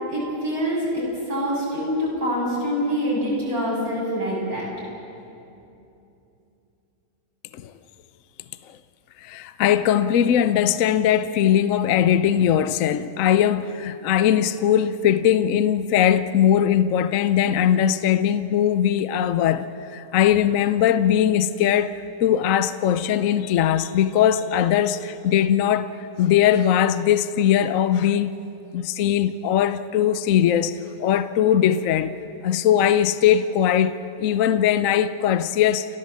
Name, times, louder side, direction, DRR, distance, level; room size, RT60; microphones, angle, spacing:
voice 1, 0.1-4.7, equal, 60° right, 8.0 m, -25 dB
voice 2, 9.2-25.9 26.2-28.3 28.7-32.2 32.4-35.9, left 10 dB, 65° left, 0.9 m, -20 dB
29.5 x 14.0 x 7.5 m
omnidirectional pair, 1.7 m